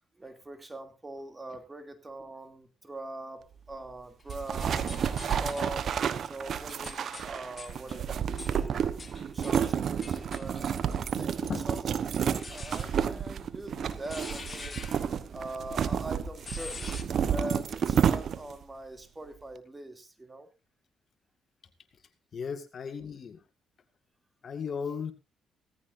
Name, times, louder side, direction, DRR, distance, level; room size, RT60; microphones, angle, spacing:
voice 1, 0.2-4.8 5.4-5.9 6.2-8.9 9.2-14.9 15.3-16.9 17.3-20.5, right 1 dB, 20° right, 7 dB, 2.8 m, -42 dB
sound 1, 3.7-5.8 6.3-11.4 12.2-17.0, left 4 dB, 35° left, 2.1 m, -46 dB
sound 2, 4.3-18.6, right 8 dB, 60° right, 1.1 m, -30 dB
voice 2, 11.2-11.6 22.3-23.4 24.4-25.1, left 6 dB, 55° left, 9 dB, 1.9 m, -36 dB
17.0 x 14.5 x 2.7 m, 0.28 s
supercardioid pair, 60°, 0 cm